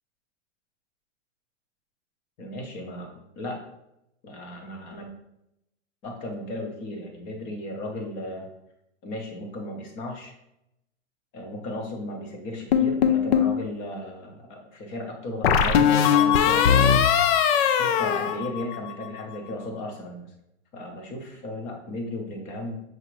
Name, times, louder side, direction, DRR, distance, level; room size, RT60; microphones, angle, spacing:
voice 1, 2.4-3.1 3.4-3.6 4.2-5.1 6.0-8.5 9.0-10.3 11.3-16.8 17.6-20.3 20.7-22.8, left 1 dB, 20° left, 3 dB, 0.6 m, -35 dB
sound 1, 12.7-13.6 15.4-19.1, left 8 dB, 60° left, 0.5 m, -20 dB
6.0 x 2.7 x 3.0 m, 0.82 s
hypercardioid pair, 150°, 35 cm